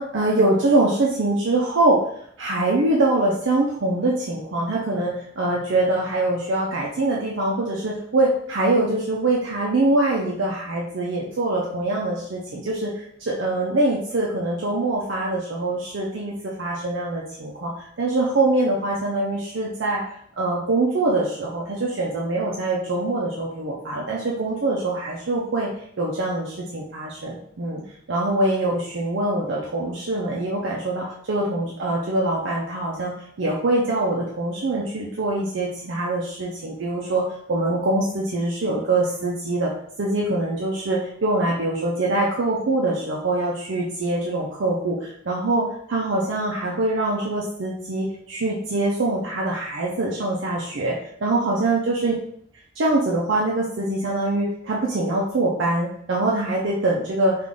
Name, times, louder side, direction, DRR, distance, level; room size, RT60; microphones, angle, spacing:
voice 1, 0.0-2.0 2.4-17.7 18.0-20.0 20.4-25.7 26.0-27.8 28.1-33.1 33.4-37.2 37.5-39.7 40.0-50.9 51.2-52.1 52.8-57.4, right 2 dB, 65° right, -4 dB, 0.6 m, -23 dB
3.5 x 2.5 x 3.6 m, 0.67 s
head